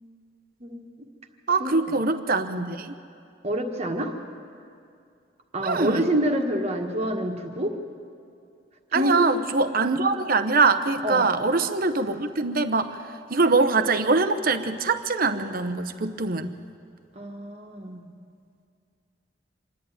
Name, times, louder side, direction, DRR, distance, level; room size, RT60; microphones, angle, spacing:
voice 1, 0.6-0.9 1.6-1.7 3.4-4.1 5.5-7.7 8.9-9.3 11.0-11.3 17.1-18.1, right 1 dB, 35° right, 3 dB, 1.6 m, -27 dB
voice 2, 1.5-3.0 5.6-6.1 8.9-13.0 13.3-16.5, right 3 dB, 50° right, 9 dB, 0.9 m, -23 dB
26.5 x 11.5 x 9.2 m, 2.4 s
head